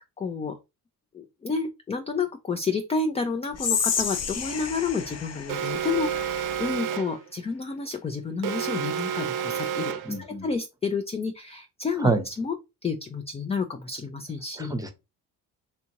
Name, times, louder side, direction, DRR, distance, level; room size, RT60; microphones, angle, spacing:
voice 1, 0.2-0.6 1.1-12.6 12.8-14.8, left 4 dB, 15° left, 0.3 m, -30 dB
Whispering, 3.5-6.8, left 6 dB, 35° left, 0.7 m, -30 dB
Alarm, 5.5-7.2 8.4-10.2, right 8 dB, 55° right, 0.7 m, -30 dB
voice 2, 10.0-10.5 12.0-12.2 14.6-14.9, right 3 dB, 10° right, 0.8 m, -26 dB
2.7 x 2.5 x 2.9 m
hypercardioid pair, 50°, 45 cm